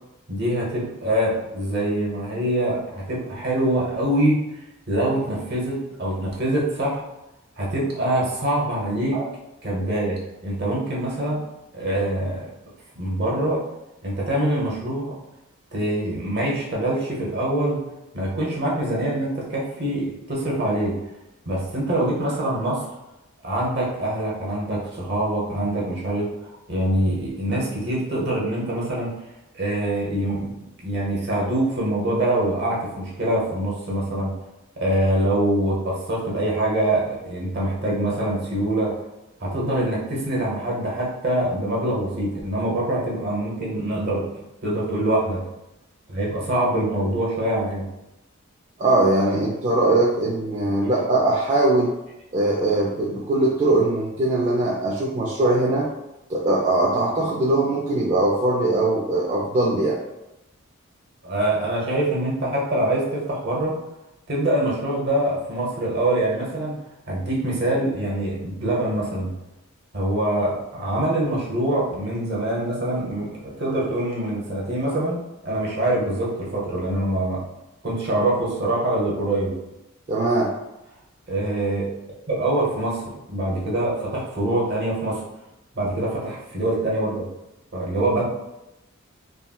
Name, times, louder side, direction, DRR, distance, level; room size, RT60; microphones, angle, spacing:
voice 1, 0.3-4.4 4.9-7.0 7.6-9.2 9.6-11.4 11.7-12.5 12.9-13.6 14.0-15.1 15.7-17.8 18.1-20.9 21.5-22.9 23.4-29.1 29.6-30.5 30.8-34.3 34.8-39.0 39.4-44.2 44.6-45.4 46.1-47.9 61.2-63.7 64.3-66.8 67.1-69.3 69.9-77.4 77.8-79.6 81.3-81.9 82.3-85.2 85.7-87.3 87.7-88.2, right 1 dB, 50° right, -4 dB, 0.9 m, -24 dB
voice 2, 48.8-51.9 52.3-55.9 56.3-60.0 80.1-80.5, right 2 dB, 30° right, -4 dB, 0.3 m, -21 dB
3.7 x 2.2 x 2.3 m, 0.93 s
head